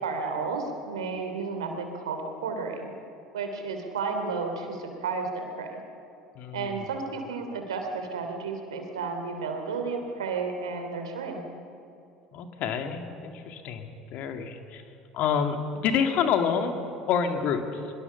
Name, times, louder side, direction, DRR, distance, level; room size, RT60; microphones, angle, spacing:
voice 1, 0.0-2.9 3.3-5.8 6.5-11.4, right 4 dB, 85° right, 5 dB, 3.0 m, -32 dB
voice 2, 6.4-6.8 12.3-14.8 15.1-15.6 15.8-16.7 17.1-17.6, left 7 dB, 55° left, 6 dB, 2.3 m, -27 dB
23.0 x 22.5 x 7.0 m, 2.8 s
hypercardioid pair, 70°, 3 cm